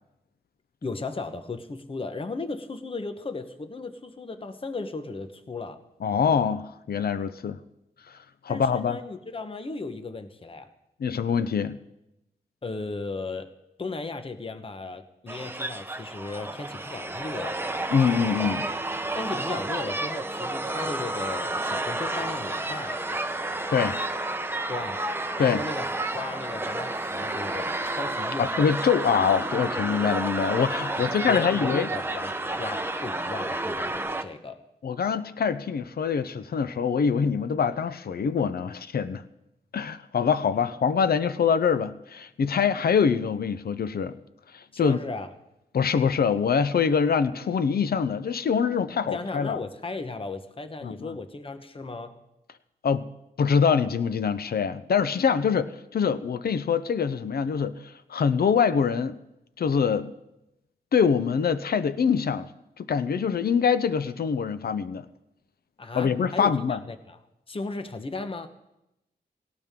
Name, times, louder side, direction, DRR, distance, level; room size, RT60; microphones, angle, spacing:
voice 1, 0.8-5.8 8.5-10.7 12.6-13.5 13.8-17.6 19.1-23.0 24.7-25.0 25.4-28.5 31.0-34.6 44.7-45.3 49.0-52.2 65.8-67.2 67.5-68.5, left 3 dB, 35° left, 9 dB, 1.1 m, -36 dB
voice 2, 6.0-7.6 8.1-8.2 8.4-9.0 11.0-11.8 17.9-18.7 23.7-24.0 25.4-25.6 28.4-31.9 34.8-39.2 39.7-44.2 44.5-45.0 45.7-49.6 50.8-51.1 52.8-53.1 53.4-59.2 59.6-60.1 60.9-62.5 62.8-65.0 65.9-66.8, left 6 dB, 65° left, 13 dB, 0.7 m, -24 dB
sound 1, 15.3-34.2, right 2 dB, 15° right, 1.0 m, -31 dB
18.0 x 18.0 x 3.7 m, 0.90 s
wide cardioid pair, 95°, 17 cm